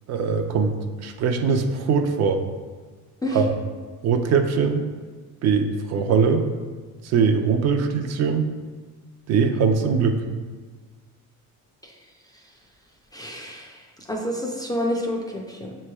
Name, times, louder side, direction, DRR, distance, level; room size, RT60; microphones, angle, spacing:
voice 1, 0.1-2.4 3.3-3.5 4.0-4.8 5.4-6.5 7.0-8.5 9.3-10.2, right 5 dB, 55° right, 6 dB, 0.4 m, -21 dB
voice 2, 13.1-13.7 14.1-15.7, left 1 dB, 15° left, -1 dB, 0.3 m, -28 dB
6.5 x 3.1 x 2.3 m, 1.4 s
cardioid pair, 135°, 32 cm